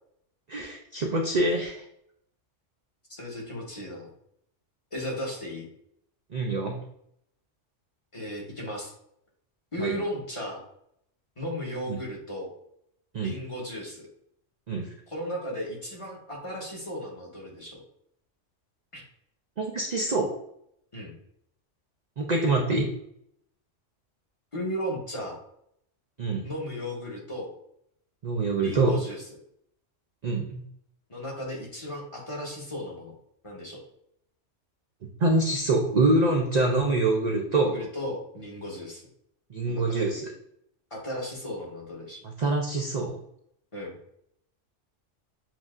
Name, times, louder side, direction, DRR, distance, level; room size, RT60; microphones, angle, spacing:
voice 1, 0.5-1.8 6.3-6.8 9.8-9.9 11.9-12.0 13.1-13.4 14.7-14.9 19.6-20.3 22.2-22.9 26.2-26.5 28.2-29.0 30.2-30.6 35.2-37.8 39.5-40.2 42.4-43.2, right 2 dB, 50° right, 1 dB, 0.5 m, -25 dB
voice 2, 3.2-4.1 4.9-5.7 8.1-8.9 9.7-10.6 11.4-12.5 13.2-14.1 15.1-17.8 18.9-19.0 20.9-21.1 24.5-25.4 26.4-27.5 28.6-29.2 31.1-33.1 33.4-33.8 37.7-39.0 39.6-40.1 40.9-42.2 43.7-43.9, equal, 25° left, -3 dB, 1.1 m, -35 dB
7.4 x 2.7 x 2.4 m, 0.73 s
omnidirectional pair, 1.3 m